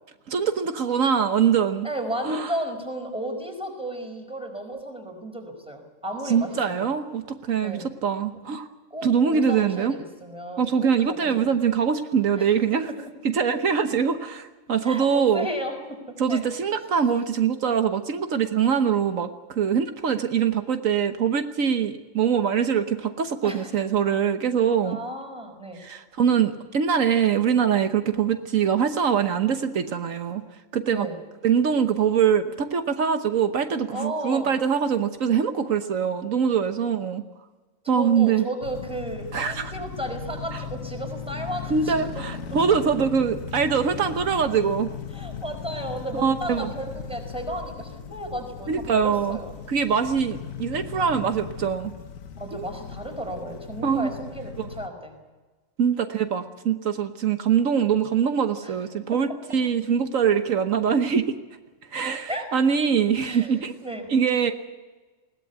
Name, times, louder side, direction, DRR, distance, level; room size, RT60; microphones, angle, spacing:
voice 1, 0.3-1.9 2.2-2.5 6.3-8.7 9.0-10.0 10.6-12.9 13.2-15.5 16.2-25.0 25.7-30.4 30.7-31.1 31.4-37.2 37.9-38.5 39.3-39.7 41.7-44.9 46.1-46.7 48.7-49.4 49.7-51.9 52.5-52.7 53.8-54.1 54.6-54.7 55.8-61.3 61.9-63.7 64.1-64.5, right 7 dB, 80° right, 8 dB, 1.5 m, -23 dB
voice 2, 1.8-6.5 7.6-7.8 8.9-11.5 12.4-12.5 14.8-16.0 16.3-16.4 23.4-23.7 24.8-25.8 30.9-31.2 33.9-34.5 37.9-42.0 45.1-49.5 52.3-55.1 58.6-58.7 62.3-62.5 63.2-64.1, right 1 dB, 5° right, 3 dB, 4.9 m, -34 dB
sound 1, 38.6-54.9, left 7 dB, 85° left, 1.5 m, -37 dB
21.0 x 18.0 x 8.2 m, 1.3 s
omnidirectional pair, 1.4 m